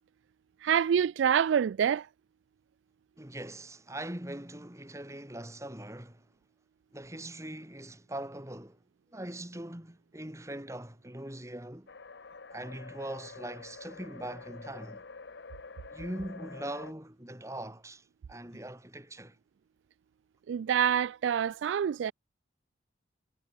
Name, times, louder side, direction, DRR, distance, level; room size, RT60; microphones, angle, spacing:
voice 1, 0.6-2.1 20.5-22.1, right 8 dB, 80° right, 0.3 m, -26 dB
voice 2, 3.2-6.3 6.9-8.8 9.1-11.9 12.5-15.0 15.9-19.4, right 1 dB, 15° right, 2.7 m, -41 dB
sound 1, 11.9-16.9, left 4 dB, 70° left, 0.9 m, -47 dB
head